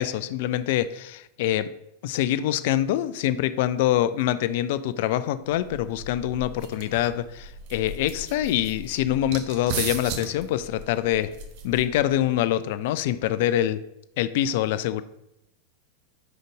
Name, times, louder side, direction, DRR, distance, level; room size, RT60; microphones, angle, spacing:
voice 1, 0.0-1.7 2.0-11.3 11.6-13.8 14.2-15.0, left 12 dB, 50° left, 14 dB, 0.3 m, -25 dB
sound 1, 5.5-12.2, right 4 dB, 45° right, 0.8 m, -37 dB
5.1 x 3.9 x 4.7 m, 0.86 s
figure-of-eight pair, 90°, 0 cm